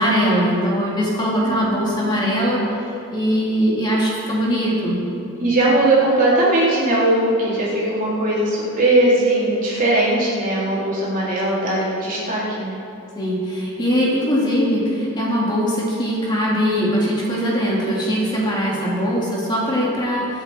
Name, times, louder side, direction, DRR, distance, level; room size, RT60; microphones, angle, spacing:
voice 1, 0.0-2.6 3.1-5.0 13.1-20.4, equal, 20° left, -5 dB, 2.7 m, -21 dB
voice 2, 1.4-1.8 5.4-12.8, right 1 dB, 40° right, -7 dB, 3.8 m, -19 dB
23.5 x 8.8 x 4.5 m, 2.8 s
head